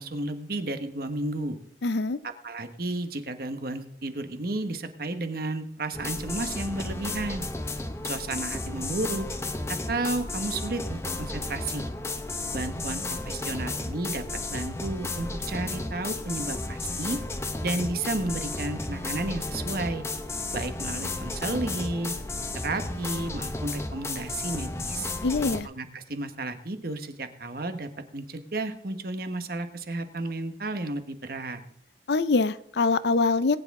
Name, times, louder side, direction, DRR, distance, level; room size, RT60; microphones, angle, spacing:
voice 1, 0.0-1.6 2.4-7.5 8.0-9.3 9.7-11.9 12.5-14.2 14.5-17.2 17.6-20.0 20.5-22.2 22.5-25.1 25.6-31.6, right 2 dB, 50° right, 8 dB, 1.2 m, -32 dB
voice 2, 1.8-2.2 25.2-25.7 32.1-33.6, left 3 dB, 65° left, 15 dB, 0.5 m, -24 dB
sound 1, 5.9-25.6, left 2 dB, 15° left, 0.7 m, -33 dB
19.5 x 9.5 x 3.7 m, 0.68 s
head